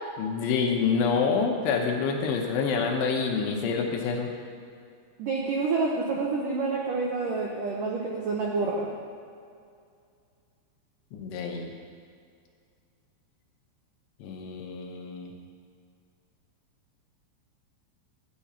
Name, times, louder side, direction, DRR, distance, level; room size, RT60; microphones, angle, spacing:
voice 1, 0.2-4.3 11.1-11.7 14.2-15.3, left 5 dB, 75° left, 2 dB, 3.0 m, -27 dB
voice 2, 5.2-8.9, right 3 dB, 90° right, -2 dB, 1.9 m, -28 dB
13.0 x 5.4 x 8.6 m, 2.3 s
omnidirectional pair, 5.4 m